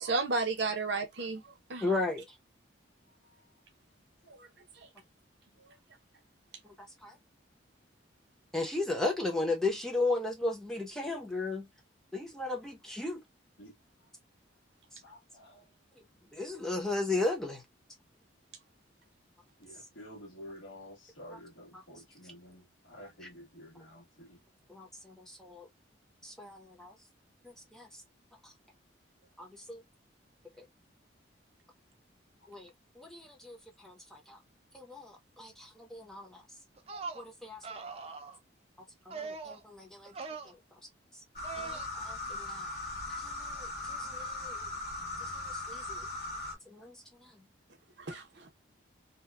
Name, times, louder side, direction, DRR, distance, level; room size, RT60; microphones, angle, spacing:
voice 1, 0.0-1.4 1.7-1.9 4.3-4.5 48.0-48.5, right 3 dB, 65° right, 0.7 m, -32 dB
voice 2, 1.8-2.2 7.0-7.1 8.5-11.7 12.1-13.2 16.3-17.6 21.3-21.4 21.7-21.8 23.2-23.3 24.7-25.7 26.2-26.9 27.7-27.9 29.4-29.8 30.6-30.7 32.5-32.7 33.0-33.6 33.8-34.4 34.7-36.4 37.2-37.6 39.1-40.1 40.5-40.6 41.6-42.6 43.1-44.6 45.5-46.0 46.7-47.0, left 2 dB, 5° left, 0.7 m, -35 dB
voice 3, 20.0-22.6 22.9-23.7, equal, 75° left, 1.3 m, -49 dB
sound 1, 36.8-37.2 37.6-38.4 39.1-39.6 40.1-40.5 41.4-41.9, right 4 dB, 30° right, 0.4 m, -41 dB
sound 2, 41.4-46.6, left 2 dB, 55° left, 1.1 m, -39 dB
2.8 x 2.2 x 2.2 m
head